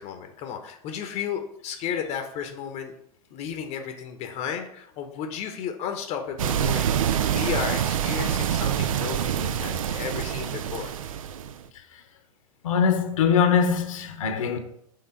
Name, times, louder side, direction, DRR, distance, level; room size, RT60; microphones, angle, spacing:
voice 1, 0.0-2.9 3.3-7.0 7.3-10.9, left 8 dB, 35° left, 0.9 m, -33 dB
sound 1, 6.4-11.6, right 9 dB, 65° right, 0.5 m, -26 dB
voice 2, 12.6-14.6, left 6 dB, 65° left, 1.0 m, -22 dB
5.7 x 3.8 x 5.3 m
figure-of-eight pair, 90°, 19 cm